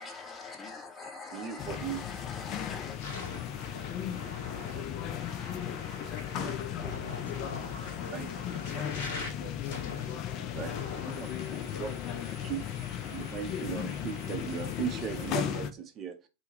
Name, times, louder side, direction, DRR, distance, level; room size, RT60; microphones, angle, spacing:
voice 1, 0.0-3.0, left 4 dB, 20° left, 0.7 m, -43 dB
voice 2, 1.3-2.0 4.7-4.8 6.3-6.9 8.1-8.3 10.5-10.7 11.1-11.3 11.8-11.9 12.4-12.6 13.1-16.2, right 8 dB, 30° right, 0.5 m, -37 dB
sound 1, 1.6-15.7, left 10 dB, 35° left, 0.3 m, -36 dB
sound 2, 2.9-15.3, left 3 dB, 50° left, 0.9 m, -44 dB
voice 3, 6.9-12.6, left 1 dB, 85° left, 0.6 m, -49 dB
2.1 x 2.1 x 3.2 m
figure-of-eight pair, 90°, 0 cm